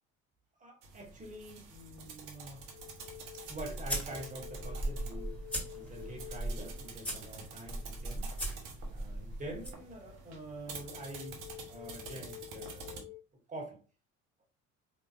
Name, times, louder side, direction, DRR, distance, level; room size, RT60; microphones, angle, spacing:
voice 1, 0.6-2.6 3.3-5.4 5.7-8.3 8.9-11.4 11.7-13.1 13.5-13.8, right 1 dB, 20° right, 1.6 m, -46 dB
sound 1, 0.8-13.0, right 4 dB, 60° right, 1.1 m, -49 dB
sound 2, 2.2-8.1 10.6-13.2, left 19 dB, 40° left, 0.4 m, -51 dB
sound 3, 3.1-9.7, right 1 dB, 5° left, 1.7 m, -39 dB
4.7 x 3.1 x 2.6 m
figure-of-eight pair, 55°, 40 cm